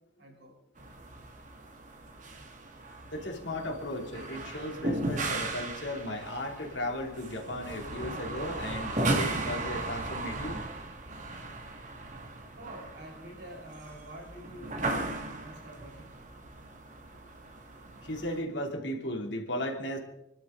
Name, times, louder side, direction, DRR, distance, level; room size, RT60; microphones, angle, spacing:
voice 1, 0.2-0.6 12.5-16.1, right 1 dB, 70° right, 0 dB, 5.6 m, -47 dB
sound 1, 0.8-18.4, right 2 dB, 45° right, 2.1 m, -37 dB
voice 2, 3.1-10.6 18.0-20.0, left 1 dB, 85° left, 2 dB, 3.1 m, -36 dB
27.0 x 12.0 x 3.9 m, 0.87 s
head